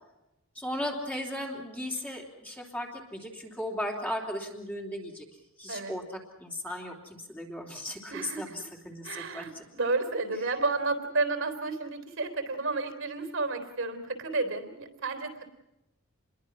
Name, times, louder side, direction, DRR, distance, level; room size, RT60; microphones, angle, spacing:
voice 1, 0.5-5.2 5.6-9.6, left 1 dB, 5° left, 0 dB, 3.2 m, -36 dB
voice 2, 8.1-8.6 9.0-15.5, right 3 dB, 60° right, 8 dB, 3.6 m, -31 dB
28.0 x 22.0 x 6.1 m, 0.91 s
head